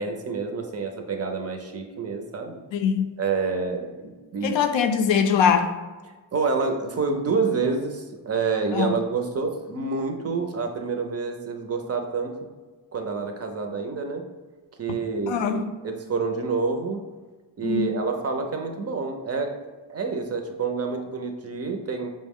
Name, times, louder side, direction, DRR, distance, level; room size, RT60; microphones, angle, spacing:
voice 1, 0.0-2.6 3.2-4.6 6.3-12.3 12.9-14.2 14.8-17.0 17.6-22.1, right 4 dB, 35° right, 4 dB, 0.4 m, -28 dB
voice 2, 2.7-3.1 4.4-5.7 8.7-8.9 15.3-15.7 17.6-17.9, left 7 dB, 80° left, 7 dB, 0.5 m, -22 dB
5.2 x 2.0 x 3.5 m, 1.3 s
wide cardioid pair, 140°, 45 cm